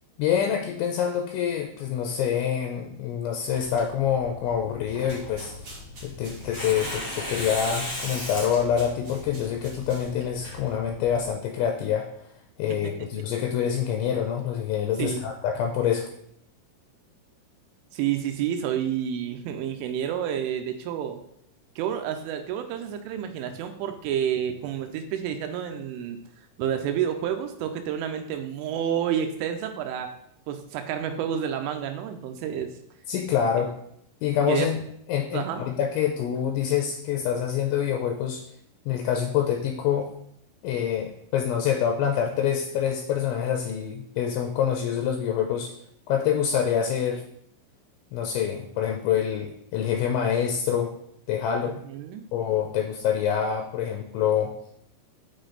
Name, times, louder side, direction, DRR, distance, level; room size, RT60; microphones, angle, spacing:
voice 1, 0.2-5.7 6.0-12.1 12.6-16.1 33.1-33.7 34.2-34.8 35.1-38.4 38.9-40.1 40.6-45.7 46.1-47.2 48.1-50.9 51.3-51.8 52.3-54.5, left 8 dB, 80° left, 3 dB, 2.8 m, -26 dB
Tearing, 3.5-11.3, left 1 dB, 15° left, 1.8 m, -37 dB
sound 1, 5.1-10.3, right 2 dB, 65° right, 1.2 m, -48 dB
voice 2, 17.9-21.2 21.8-26.2 26.6-30.1 30.5-32.7 33.5-33.6 34.5-34.7 35.3-35.6 51.9-52.2, right 9 dB, 85° right, 6 dB, 3.1 m, -29 dB
6.8 x 6.3 x 3.9 m, 0.72 s
omnidirectional pair, 5.7 m